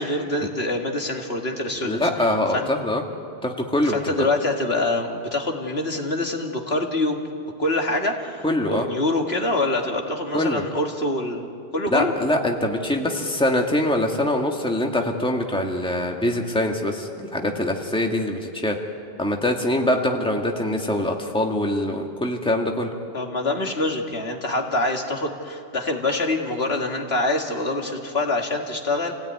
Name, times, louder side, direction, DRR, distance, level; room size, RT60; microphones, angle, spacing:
voice 1, 0.0-2.7 3.8-7.2 7.6-11.5 11.7-12.1 23.1-29.1, left 2 dB, 60° left, 2 dB, 2.2 m, -25 dB
voice 2, 1.8-3.0 3.4-4.3 8.4-8.9 10.3-10.6 11.9-18.8 19.2-22.9, left 1 dB, 5° left, 1 dB, 1.8 m, -23 dB
28.0 x 17.0 x 9.6 m, 2.4 s
omnidirectional pair, 1.2 m